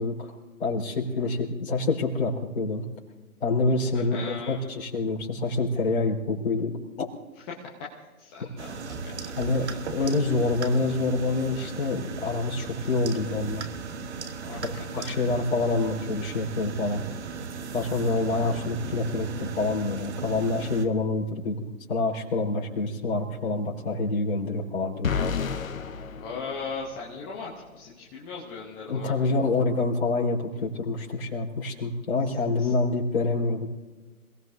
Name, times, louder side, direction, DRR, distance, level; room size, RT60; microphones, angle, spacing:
voice 1, 0.0-2.8 3.4-7.1 8.4-8.5 9.4-13.6 14.9-17.0 17.7-25.2 28.9-33.7, left 3 dB, 45° left, -2 dB, 4.2 m, -27 dB
voice 2, 3.9-4.9 7.5-7.7 8.2-9.3 9.6-10.0 14.4-14.6 14.9-15.3 26.2-29.1 32.6-32.7, left 4 dB, 10° left, -4 dB, 0.7 m, -39 dB
sound 1, 8.6-20.9, right 5 dB, 50° right, 1.3 m, -37 dB
sound 2, 25.0-27.2, left 6 dB, 65° left, 1.1 m, -31 dB
28.0 x 18.5 x 2.7 m, 1.3 s
hypercardioid pair, 150°, 44 cm